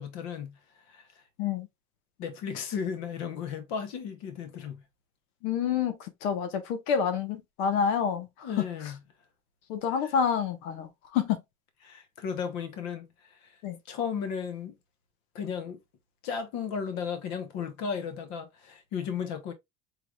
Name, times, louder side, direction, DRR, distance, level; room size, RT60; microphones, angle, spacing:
voice 1, 0.0-1.2 2.2-4.8 8.4-9.0 10.0-10.1 11.8-13.6 13.9-14.8 15.3-15.8 16.2-19.5, left 7 dB, 55° left, 1.0 m, -35 dB
voice 2, 5.4-8.6 9.7-11.4 13.6-13.8, left 7 dB, 90° left, 1.1 m, -28 dB
4.8 x 3.4 x 2.3 m
cardioid pair, 165°, 32 cm